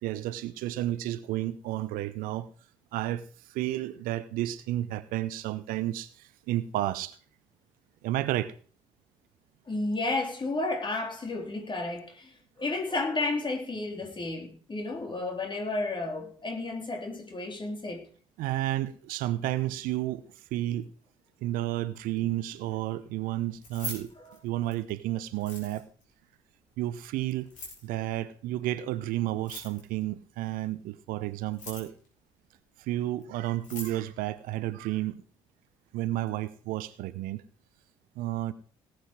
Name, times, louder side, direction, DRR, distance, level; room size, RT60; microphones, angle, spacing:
voice 1, 0.0-2.5 2.9-7.2 8.0-8.5 18.4-20.2 20.5-20.9 21.4-24.1 24.4-25.8 26.8-27.5 27.8-31.9 32.8-35.2 35.9-37.4 38.2-38.5, right 14 dB, 60° right, 0.8 m, -31 dB
voice 2, 9.7-18.1 24.2-24.4, left 2 dB, 30° left, 3.6 m, -32 dB
Keys jangling, 23.5-24.9 25.3-26.0 27.4-27.9 29.3-30.0 31.4-32.1 33.2-33.3 33.5-34.0, left 3 dB, 55° left, 5.7 m, -42 dB
18.5 x 8.1 x 5.0 m
figure-of-eight pair, 45°, 16 cm